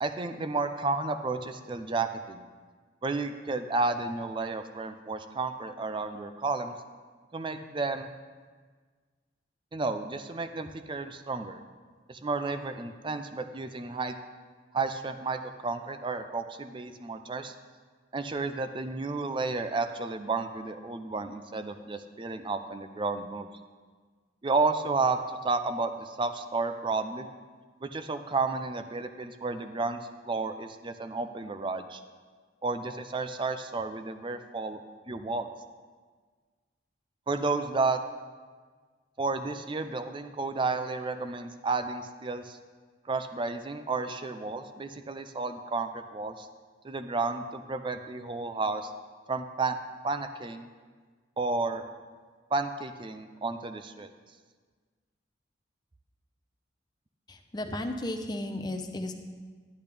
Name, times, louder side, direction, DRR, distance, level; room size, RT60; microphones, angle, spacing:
voice 1, 0.0-2.4 3.0-6.7 7.3-8.1 9.7-11.6 12.1-14.1 14.7-17.5 18.1-23.5 24.4-27.3 27.8-32.0 32.6-34.8 35.1-35.5 37.3-38.0 39.2-42.6 43.1-46.5 46.8-48.9 49.3-49.8 50.0-50.7 51.4-51.8 52.5-54.1, right 3 dB, 25° right, 9 dB, 0.4 m, -32 dB
voice 2, 57.3-59.1, left 1 dB, 20° left, 5 dB, 0.6 m, -34 dB
10.5 x 10.0 x 3.4 m, 1.5 s
head